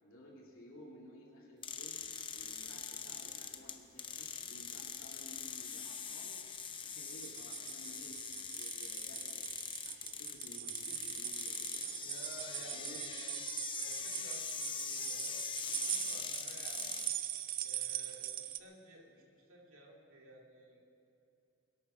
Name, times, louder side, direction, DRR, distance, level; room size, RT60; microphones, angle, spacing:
voice 1, 0.0-2.0 2.3-6.4 6.8-8.2 8.5-9.4 9.8-12.0 12.6-13.0, left 1 dB, 65° left, -3 dB, 3.1 m, -55 dB
sound 1, 1.6-17.2, left 6 dB, 25° left, 0.8 m, -43 dB
sound 2, 6.9-18.6, right 12 dB, 40° right, 0.5 m, -42 dB
voice 2, 12.0-13.4 13.8-17.0 17.6-20.8, right 2 dB, 65° right, -1 dB, 2.5 m, -55 dB
21.5 x 8.6 x 6.0 m, 2.8 s
head